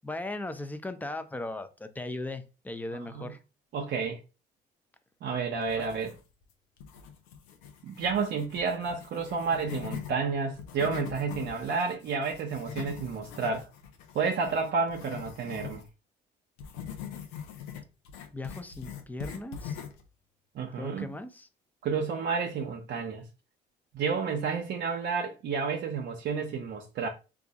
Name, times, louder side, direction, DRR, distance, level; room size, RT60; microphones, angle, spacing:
voice 1, 0.0-3.4 5.8-5.9 18.3-19.8 20.8-21.5, left 2 dB, 10° left, 0.5 m, -38 dB
voice 2, 2.9-3.2 3.7-4.2 5.2-6.1 7.8-13.7 14.1-15.8 20.5-21.1 21.8-23.2 23.9-27.1, right 5 dB, 60° right, 0.7 m, -30 dB
sound 1, 5.6-6.4 6.8-10.1 10.5-15.9 16.6-20.1, left 8 dB, 85° left, 0.6 m, -42 dB
2.4 x 2.4 x 4.0 m
supercardioid pair, 65°, 21 cm